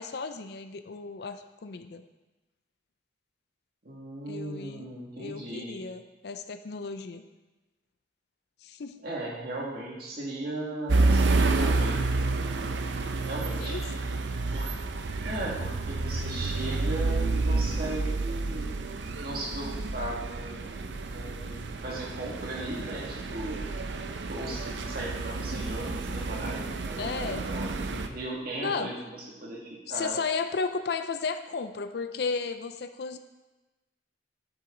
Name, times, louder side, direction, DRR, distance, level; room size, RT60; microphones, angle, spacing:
voice 1, 0.0-2.0 4.3-4.9 5.2-7.2 8.6-9.0 13.6-13.8 27.0-27.5 28.6-28.9 29.9-33.2, left 4 dB, 65° left, 9 dB, 0.5 m, -34 dB
voice 2, 3.8-5.8 9.0-12.1 13.2-13.8 14.5-14.7 15.2-18.7 19.2-20.8 21.1-23.7 24.3-30.2, right 1 dB, 55° right, -4 dB, 2.2 m, -37 dB
sound 1, 10.9-28.1, right 3 dB, 90° right, 0.6 m, -29 dB
8.9 x 6.9 x 3.9 m, 1.1 s
head